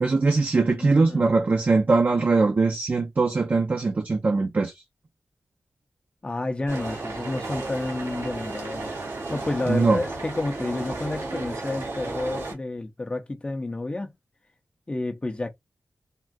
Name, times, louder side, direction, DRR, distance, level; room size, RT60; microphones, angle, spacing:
voice 1, 0.0-4.7 9.7-10.0, right 3 dB, 40° right, 0.5 m, -21 dB
voice 2, 0.7-1.3 6.2-14.1 14.9-15.5, left 2 dB, 25° left, 0.5 m, -30 dB
sound 1, 6.7-12.5, right 2 dB, 85° right, 1.4 m, -34 dB
3.5 x 2.2 x 2.5 m
wide cardioid pair, 120°, 4 cm